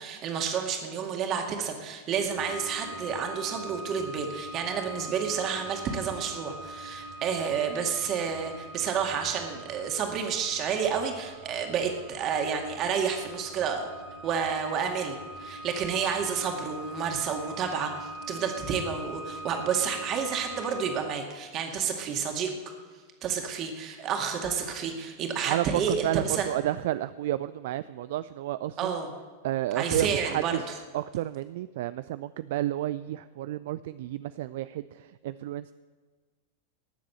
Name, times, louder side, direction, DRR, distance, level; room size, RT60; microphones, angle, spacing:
voice 1, 0.0-13.9 14.2-22.5 23.2-26.5 28.8-29.1 29.7-30.7, right 6 dB, 35° right, 3 dB, 2.2 m, -30 dB
sound 1, 2.3-21.0, right 1 dB, 75° right, 3.7 m, -42 dB
voice 2, 25.4-28.9 29.4-30.6 30.9-35.7, right 14 dB, 55° right, 15 dB, 0.3 m, -31 dB
19.0 x 7.4 x 7.6 m, 1.5 s
figure-of-eight pair, 90°, 0 cm